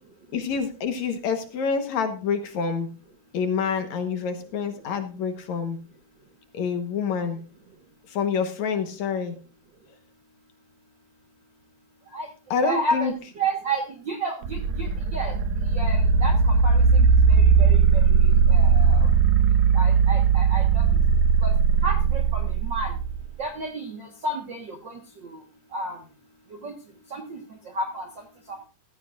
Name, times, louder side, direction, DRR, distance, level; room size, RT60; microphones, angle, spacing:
voice 1, 0.3-2.9 3.3-5.8 6.5-7.4 8.1-9.4 12.5-13.1, left 6 dB, 65° left, 7 dB, 2.4 m, -27 dB
voice 2, 12.6-15.3 15.7-18.0 18.5-19.1 19.7-20.8 21.4-21.5 21.8-22.9 23.4-25.0 25.7-26.0 26.6-26.7 27.1-27.4 27.7-28.1 28.5-28.6, right 2 dB, 50° right, 3 dB, 1.5 m, -31 dB
sound 1, 14.4-23.2, right 6 dB, 70° right, 1.8 m, -19 dB
15.0 x 14.5 x 2.5 m, 0.35 s
omnidirectional pair, 3.8 m